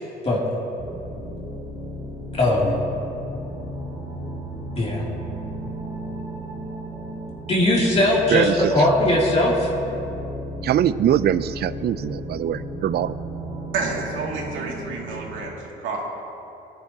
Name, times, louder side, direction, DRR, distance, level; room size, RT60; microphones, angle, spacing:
sound 1, 0.8-15.4, equal, 15° right, 2.7 m, -34 dB
voice 1, 2.4-2.8 4.8-5.1 7.5-9.7, left 1 dB, 30° left, -5 dB, 2.6 m, -19 dB
voice 2, 10.6-13.2, right 11 dB, 55° right, 16 dB, 0.4 m, -22 dB
voice 3, 13.7-16.0, right 3 dB, 80° right, -2 dB, 2.3 m, -29 dB
20.5 x 10.5 x 2.8 m, 2.8 s
cardioid pair, 90°, 20 cm